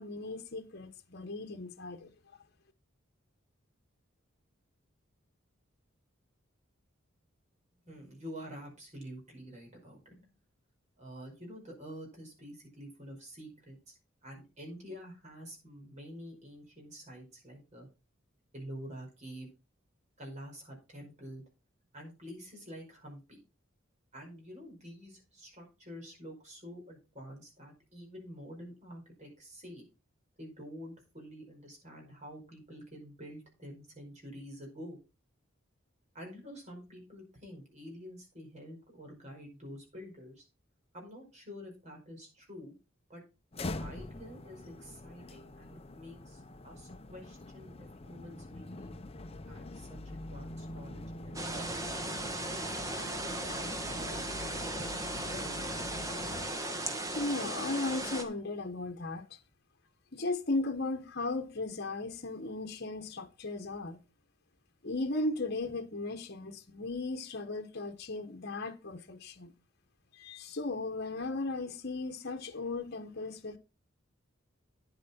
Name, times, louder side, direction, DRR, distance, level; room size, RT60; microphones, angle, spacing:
voice 1, 0.0-2.1 57.1-59.4 60.1-64.0 64.8-69.5 70.1-73.6, left 2 dB, 50° left, 1.2 m, -36 dB
voice 2, 7.8-10.3 11.0-17.9 18.5-19.5 20.2-21.4 21.9-23.4 24.1-29.9 30.4-35.0 36.1-40.5 40.9-42.7 43.1-43.2 43.8-48.9 49.4-51.9 52.3-55.5, equal, 35° right, 5.2 m, -48 dB
sound 1, 43.5-56.5, left 2 dB, 30° left, 0.7 m, -44 dB
sound 2, 51.3-58.2, right 1 dB, 15° right, 1.4 m, -37 dB
9.9 x 8.4 x 4.3 m
head